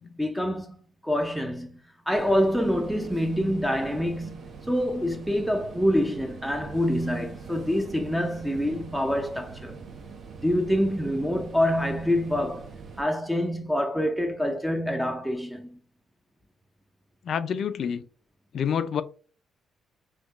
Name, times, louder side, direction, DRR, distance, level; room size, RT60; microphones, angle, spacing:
voice 1, 0.2-0.8 1.0-1.8 2.1-9.8 10.4-12.7 13.0-15.8, equal, ahead, 0.4 m, -26 dB
sound 1, 2.1-13.0, right 5 dB, 55° right, 0.7 m, -43 dB
voice 2, 17.2-18.1 18.5-19.0, left 7 dB, 60° left, 0.3 m, -28 dB
4.3 x 2.2 x 2.4 m
cardioid pair, 90°, 0 cm